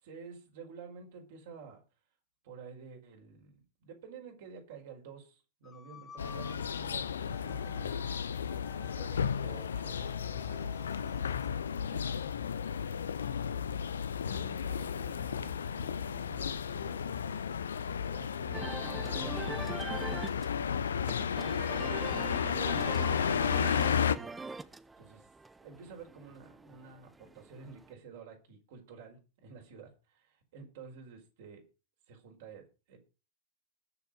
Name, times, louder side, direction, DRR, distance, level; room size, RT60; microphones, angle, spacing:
voice 1, 0.0-1.8 2.4-8.3 8.8-10.8 11.9-12.3 14.3-17.4 17.8-19.5 19.9-20.5 21.5-24.3 25.0-25.3 25.6-31.6 32.1-33.0, right 5 dB, 55° right, 2 dB, 5.1 m, -51 dB
sound 1, 5.6-11.5, left 5 dB, 20° left, 2.3 m, -54 dB
sound 2, 6.2-24.2, left 7 dB, 70° left, 0.8 m, -33 dB
sound 3, 18.5-27.9, right 3 dB, 10° right, 0.9 m, -43 dB
21.0 x 7.0 x 5.2 m, 0.33 s
figure-of-eight pair, 90°, 0 cm